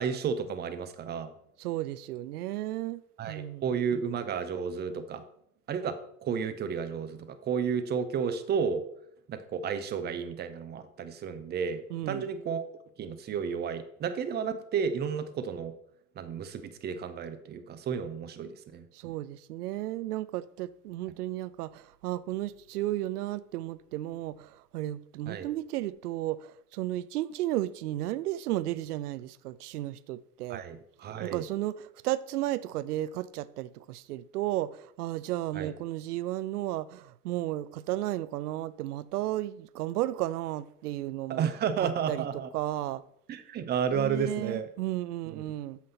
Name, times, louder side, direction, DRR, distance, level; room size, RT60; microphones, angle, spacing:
voice 1, 0.0-1.3 3.2-5.2 5.7-8.8 9.3-12.7 13.0-15.7 16.2-18.8 25.3-25.5 30.5-31.4 35.5-35.7 41.3-42.5 43.3-44.7 45.3-45.4, right 7 dB, 20° right, 0.6 m, -32 dB
voice 2, 1.6-3.7 11.9-12.3 18.9-30.6 31.2-41.5 41.8-42.2 42.5-43.0 43.9-45.8, right 15 dB, 70° right, 0.5 m, -34 dB
7.5 x 5.8 x 4.2 m
hypercardioid pair, 90°, 49 cm